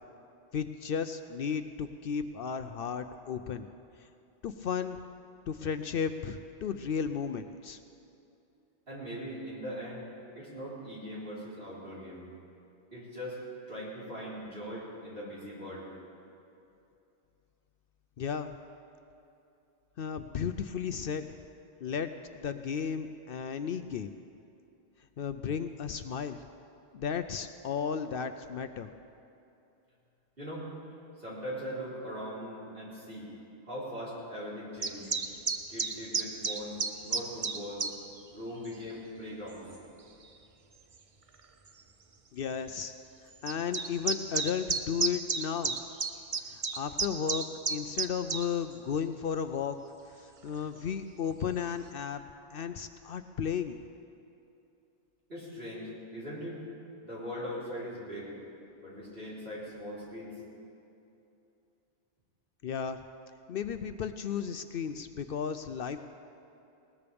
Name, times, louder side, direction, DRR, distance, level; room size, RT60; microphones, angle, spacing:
voice 1, 0.5-3.7 4.4-5.0 5.5-7.8 18.2-18.5 20.0-21.3 21.8-22.1 22.3-24.1 25.2-26.4 26.9-28.9 42.3-42.9 43.4-45.7 46.5-49.8 50.2-52.2 52.5-53.8 62.6-63.0 63.5-66.0, left 7 dB, 65° left, 9 dB, 0.7 m, -34 dB
voice 2, 8.9-10.1 10.4-12.2 12.9-13.4 13.7-15.9 30.4-30.7 31.2-33.3 33.6-35.1 35.7-37.9 38.3-39.7 55.3-56.6 57.0-58.3 58.8-60.4, equal, 60° right, -7 dB, 4.3 m, -40 dB
sound 1, 34.8-37.9 38.6-38.8 39.7-39.8 40.9-41.0 41.3-41.4 41.7-41.8 43.5-48.4, right 4 dB, 35° right, 0.7 m, -31 dB
20.5 x 18.5 x 3.5 m, 2.7 s
omnidirectional pair, 1.1 m